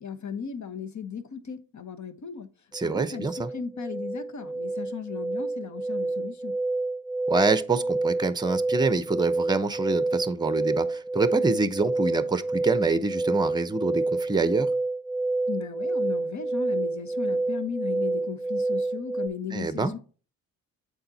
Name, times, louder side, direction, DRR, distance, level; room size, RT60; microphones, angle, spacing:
voice 1, 0.0-2.5 2.8-6.6 15.5-20.0, left 6 dB, 45° left, 1.2 m, -36 dB
sound 1, 2.7-19.3, right 2 dB, 20° left, 1.9 m, -28 dB
voice 2, 2.7-3.5 7.3-14.7 19.5-19.9, right 3 dB, 10° right, 0.8 m, -26 dB
7.9 x 4.2 x 4.1 m
hypercardioid pair, 50°, 41 cm